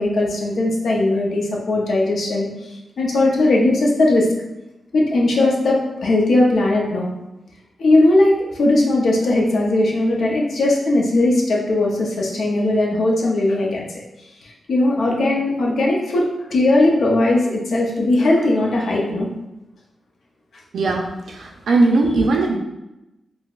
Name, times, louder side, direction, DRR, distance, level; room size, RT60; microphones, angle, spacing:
voice 1, 0.0-2.5 3.0-4.3 4.9-7.1 7.8-13.9 14.4-19.3 22.0-22.1, left 2 dB, 70° left, -2 dB, 0.6 m, -18 dB
voice 2, 20.7-21.0 21.3-22.6, right 3 dB, 80° right, 1 dB, 0.5 m, -18 dB
3.9 x 2.1 x 2.4 m, 0.94 s
cardioid pair, 90°, 0 cm